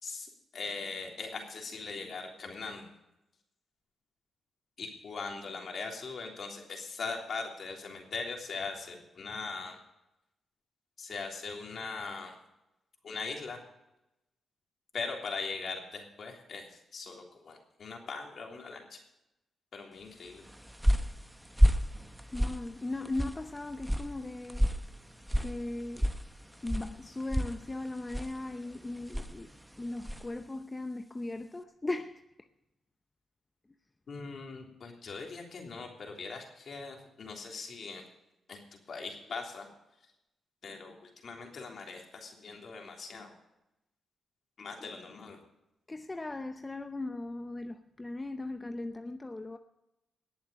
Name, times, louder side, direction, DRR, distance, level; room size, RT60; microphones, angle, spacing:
voice 1, 0.0-2.8 4.8-9.8 11.0-12.4 13.0-13.6 14.9-19.0 19.7-20.5 34.1-38.1 38.5-39.7 40.6-43.3 44.6-45.4, left 4 dB, 55° left, 3.3 m, -40 dB
sound 1, 20.3-30.4, equal, 5° right, 0.9 m, -31 dB
voice 2, 22.3-24.7 25.4-26.1 26.6-29.5 29.8-32.2 45.9-49.6, left 2 dB, 20° left, 0.7 m, -38 dB
19.5 x 7.3 x 6.8 m
cardioid pair, 80°, 0 cm